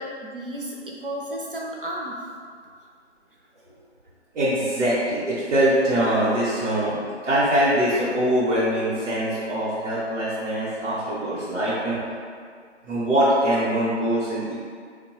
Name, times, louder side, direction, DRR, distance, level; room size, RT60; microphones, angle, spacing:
voice 1, 0.0-2.1, right 1 dB, 50° right, -2 dB, 0.5 m, -33 dB
voice 2, 4.3-7.0 7.2-12.0 12.9-14.5, right 1 dB, 75° right, -10 dB, 0.9 m, -23 dB
3.0 x 2.2 x 3.0 m, 2.1 s
figure-of-eight pair, 180°, 35 cm